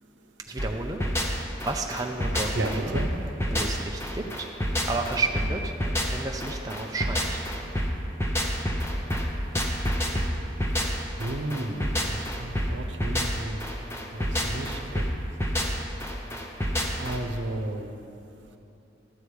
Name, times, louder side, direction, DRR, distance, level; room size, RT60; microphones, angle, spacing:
voice 1, 0.5-1.0 1.6-3.0 3.5-4.5 4.9-5.7 6.1-7.4, right 3 dB, 20° right, 2 dB, 0.5 m, -31 dB
sound 1, 0.6-17.2, equal, 15° left, 0.7 m, -28 dB
voice 2, 2.5-3.1 11.2-13.6 14.1-15.0 17.0-17.9, right 1 dB, 75° right, 5 dB, 0.9 m, -33 dB
12.5 x 4.8 x 8.5 m, 2.8 s
head